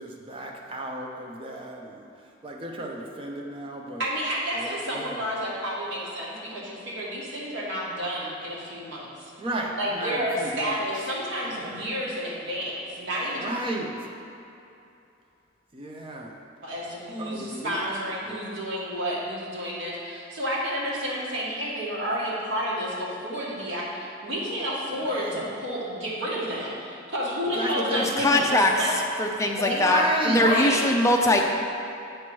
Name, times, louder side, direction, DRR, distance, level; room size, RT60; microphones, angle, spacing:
voice 1, 0.0-2.1 2.4-4.0 4.6-5.2 9.4-10.7 11.4-12.0 13.3-14.0 15.7-16.4 17.2-18.4 25.1-25.4 27.5-28.5 29.6-30.4, right 1 dB, 25° right, 0 dB, 0.7 m, -33 dB
voice 2, 4.0-9.3 9.8-13.4 16.6-28.9 29.5-29.8 30.3-30.9, equal, 85° right, -6 dB, 1.6 m, -30 dB
voice 3, 27.9-28.7 29.2-31.4, left 2 dB, 15° left, 1 dB, 0.5 m, -22 dB
7.9 x 3.0 x 6.2 m, 2.8 s
head